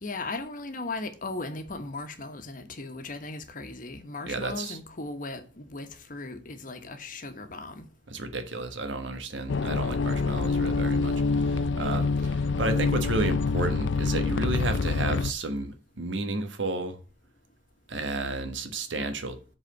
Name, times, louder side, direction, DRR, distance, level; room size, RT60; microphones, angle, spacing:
voice 1, 0.0-7.8, left 3 dB, 45° left, 1.2 m, -37 dB
voice 2, 4.3-4.8 8.1-17.0 17.9-19.4, right 2 dB, 85° right, 1.3 m, -32 dB
sound 1, 9.5-15.3, left 4 dB, 75° left, 0.5 m, -26 dB
7.9 x 4.2 x 6.9 m
head